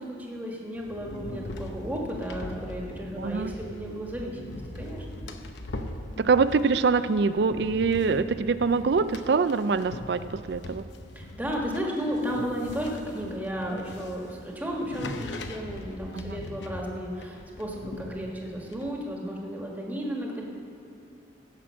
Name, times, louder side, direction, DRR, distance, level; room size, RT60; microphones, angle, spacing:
voice 1, 0.0-5.4 11.1-20.4, equal, 10° right, -1 dB, 1.4 m, -34 dB
sound 1, 0.8-18.9, left 2 dB, 70° left, 0.8 m, -41 dB
voice 2, 3.2-3.5 6.2-10.2 10.5-10.8 16.1-16.4, right 4 dB, 60° right, 13 dB, 0.4 m, -24 dB
16.5 x 6.0 x 6.2 m, 2.6 s
head